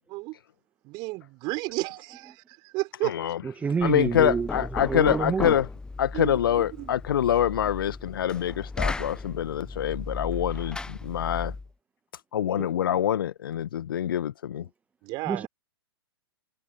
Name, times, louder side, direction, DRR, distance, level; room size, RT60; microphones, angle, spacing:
voice 1, 0.8-3.2 6.1-6.9 15.0-15.5, right 24 dB, 30° right, 4.7 m, -33 dB
voice 2, 3.0-3.4 3.8-5.7 6.0-11.5 12.3-14.7, left 10 dB, 55° left, 1.6 m, -25 dB
voice 3, 3.6-4.5 4.9-5.6 12.6-12.7 15.3-15.5, right 5 dB, 10° right, 1.4 m, -27 dB
Knock, 3.8-11.7, left 3 dB, 5° left, 1.0 m, -36 dB
figure-of-eight pair, 110°, 14 cm